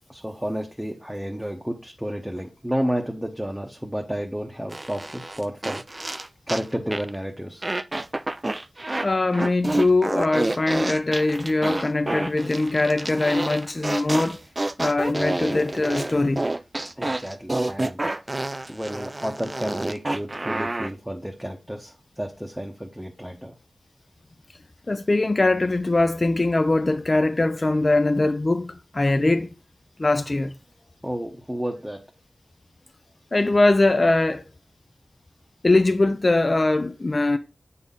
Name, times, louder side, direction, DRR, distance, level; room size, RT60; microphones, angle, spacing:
voice 1, 0.1-7.7 13.7-14.0 17.0-23.5 31.0-32.0, equal, 5° right, 0.9 m, -31 dB
sound 1, 4.7-6.7 6.9-7.2 7.6-9.1 9.3-20.9, right 2 dB, 25° right, 0.3 m, -29 dB
voice 2, 9.0-14.4 14.8-16.4 24.9-29.5 30.0-30.6 33.3-34.4 35.6-37.4, left 2 dB, 35° left, 0.5 m, -21 dB
8.1 x 4.1 x 3.7 m
wide cardioid pair, 95°, 0 cm